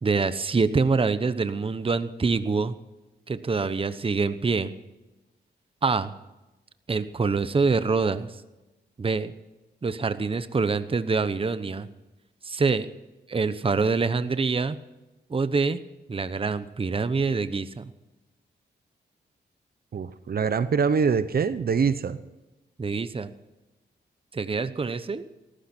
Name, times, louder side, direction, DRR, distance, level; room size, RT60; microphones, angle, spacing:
voice 1, 0.0-2.7 3.3-4.7 5.8-6.1 6.9-8.3 9.0-9.3 9.8-11.9 12.4-12.9 13.3-14.8 15.3-15.8 16.1-17.9 22.8-23.3 24.3-25.2, right 4 dB, 30° right, 12 dB, 0.9 m, -25 dB
voice 2, 19.9-22.2, right 6 dB, 55° right, 13 dB, 0.9 m, -24 dB
18.0 x 15.0 x 4.4 m, 1.0 s
cardioid pair, 90°, 19 cm